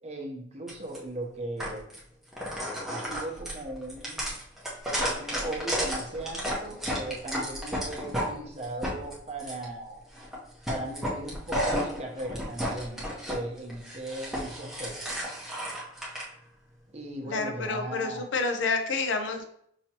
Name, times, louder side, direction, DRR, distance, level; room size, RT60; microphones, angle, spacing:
voice 1, 0.0-1.8 2.9-4.2 5.0-10.0 10.7-15.2 16.9-18.3, right 1 dB, 35° right, 0 dB, 0.8 m, -38 dB
sound 1, 0.7-1.0 1.6-2.0 2.3-8.3 8.6-9.6 10.1-10.4 10.6-13.4 13.7-16.2, equal, ahead, 0.8 m, -32 dB
voice 2, 17.2-19.4, left 4 dB, 85° left, 5 dB, 0.6 m, -29 dB
5.6 x 2.9 x 2.9 m, 0.71 s
head